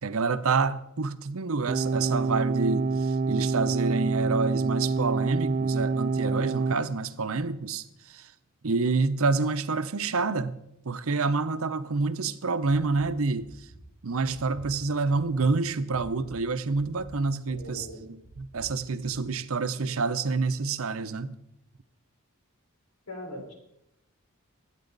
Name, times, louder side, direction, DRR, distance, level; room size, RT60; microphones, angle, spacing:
voice 1, 0.0-8.3 8.6-13.7 14.0-17.9 18.4-21.4, right 4 dB, 70° right, 0.7 m, -28 dB
sound 1, 1.7-6.7, right 4 dB, 35° right, 0.4 m, -26 dB
sound 2, 13.4-13.8 14.2-14.7 15.1-15.5 15.9-16.3 16.7-17.1 17.5-17.9 18.2-18.7 19.0-19.1, right 1 dB, 50° left, 6.2 m, -49 dB
voice 2, 17.5-18.0 23.1-23.5, left 1 dB, 80° left, 4.1 m, -40 dB
21.5 x 9.1 x 4.0 m
head